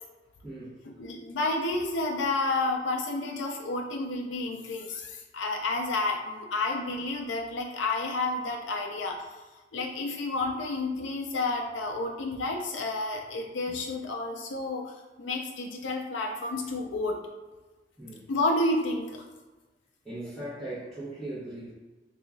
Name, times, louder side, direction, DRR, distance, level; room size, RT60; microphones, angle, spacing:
voice 1, 0.4-0.8 18.0-18.3 20.0-21.7, right 1 dB, 5° left, -15 dB, 1.1 m, -39 dB
voice 2, 1.0-9.3 9.7-17.2 18.3-19.2, left 2 dB, 90° left, 1 dB, 0.4 m, -30 dB
2.9 x 2.4 x 3.8 m, 1.2 s
head